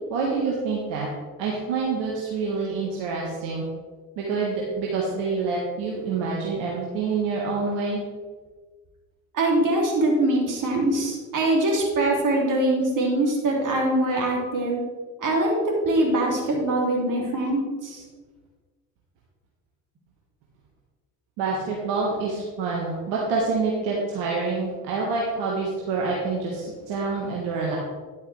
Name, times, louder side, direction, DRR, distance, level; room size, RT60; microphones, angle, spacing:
voice 1, 0.1-1.1 1.4-3.6 4.2-8.0 21.4-27.8, right 4 dB, 65° right, -3 dB, 1.7 m, -27 dB
voice 2, 9.3-14.8 15.2-18.0, right 1 dB, 45° right, -1 dB, 3.0 m, -23 dB
10.5 x 8.4 x 3.4 m, 1.4 s
figure-of-eight pair, 60°, 44 cm